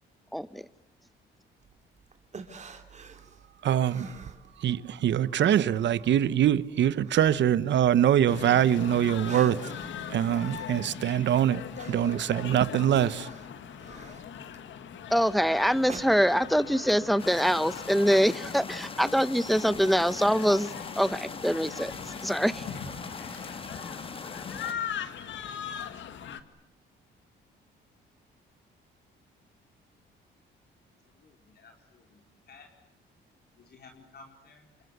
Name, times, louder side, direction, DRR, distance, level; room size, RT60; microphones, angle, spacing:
voice 1, 0.3-0.6 15.1-20.7 21.0-22.7, equal, ahead, 1.0 m, -24 dB
sound 1, 1.6-4.9 5.2-8.5 8.9-16.6, right 4 dB, 35° right, 3.0 m, -48 dB
voice 2, 3.6-4.1 4.6-9.6 10.1-11.6 11.9-13.3, right 10 dB, 65° right, 1.1 m, -23 dB
sound 2, 8.3-26.4, left 8 dB, 70° left, 1.9 m, -40 dB
sound 3, 17.2-24.7, left 4 dB, 25° left, 1.6 m, -41 dB
voice 3, 31.2-32.7 33.5-34.7, left 4 dB, 55° left, 4.4 m, -54 dB
28.5 x 25.0 x 8.1 m
cardioid pair, 90°, 20 cm